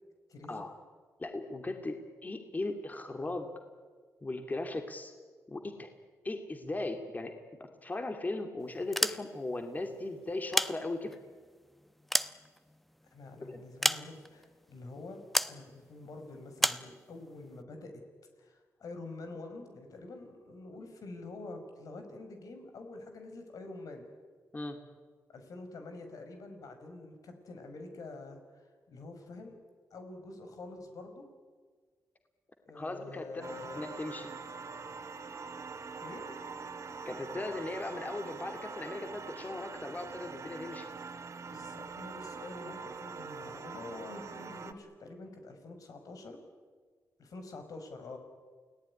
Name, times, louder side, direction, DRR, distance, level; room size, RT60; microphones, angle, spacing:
voice 1, 0.3-0.6 13.1-15.2 15.5-17.9 18.4-24.1 25.3-29.6 29.9-31.3 32.7-33.9 36.0-36.3 41.5-46.4 47.2-48.2, left 2 dB, 75° left, 5 dB, 5.3 m, -46 dB
voice 2, 1.2-2.0 2.2-3.5 4.2-5.1 5.5-5.9 6.2-7.4 7.8-11.2 13.4-13.6 24.5-24.8 32.7-34.3 37.0-40.9, left 2 dB, 30° left, 5 dB, 2.7 m, -38 dB
sound 1, 8.8-9.6 10.3-11.3 11.8-13.0 13.8-14.5 15.3-15.6 16.6-16.9, equal, ahead, 1.0 m, -31 dB
sound 2, 33.4-44.7, right 5 dB, 55° right, 2.3 m, -44 dB
29.0 x 18.5 x 9.9 m, 1.6 s
cardioid pair, 90°, 6 cm